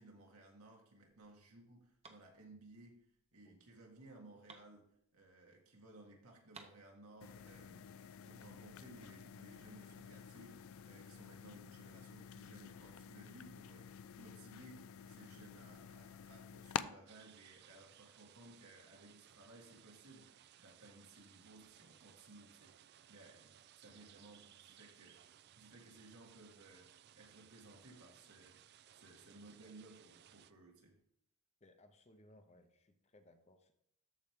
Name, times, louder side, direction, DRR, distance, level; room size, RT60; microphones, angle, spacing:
voice 1, 0.0-2.9 3.3-4.8 5.1-7.9 8.3-26.9 27.1-28.6 28.9-30.9, right 2 dB, 80° right, 1 dB, 1.9 m, -59 dB
sound 1, 1.6-5.6 5.9-6.0 6.2-7.5, right 4 dB, 30° right, 0.8 m, -62 dB
sound 2, 7.2-16.8, left 8 dB, 70° left, 0.4 m, -49 dB
sound 3, 17.1-30.5, right 10 dB, 45° right, 0.3 m, -63 dB
voice 2, 31.6-33.8, left 1 dB, 30° left, 8 dB, 0.7 m, -64 dB
13.5 x 4.6 x 3.6 m, 0.73 s
head